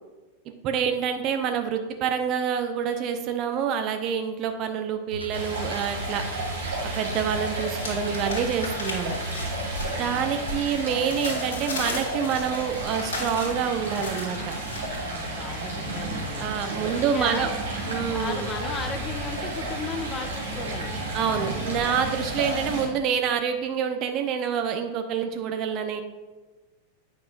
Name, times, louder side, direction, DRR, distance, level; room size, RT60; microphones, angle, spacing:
voice 1, 0.6-6.2 7.0-9.1 9.9-14.5 16.4-17.5 17.9-18.5 21.1-26.0, right 7 dB, 35° right, 6 dB, 0.6 m, -27 dB
sound 1, 5.1-10.3, left 1 dB, 90° left, 0.4 m, -38 dB
Stream, 5.3-22.9, right 2 dB, 65° right, 2.1 m, -32 dB
sound 2, 6.0-6.8 7.1-15.0, left 2 dB, 60° left, 1.8 m, -37 dB
voice 2, 9.8-10.5 15.1-17.5 18.1-21.0, left 4 dB, 25° left, 6 dB, 0.8 m, -36 dB
8.7 x 5.6 x 2.5 m, 1.3 s
figure-of-eight pair, 90°, 0 cm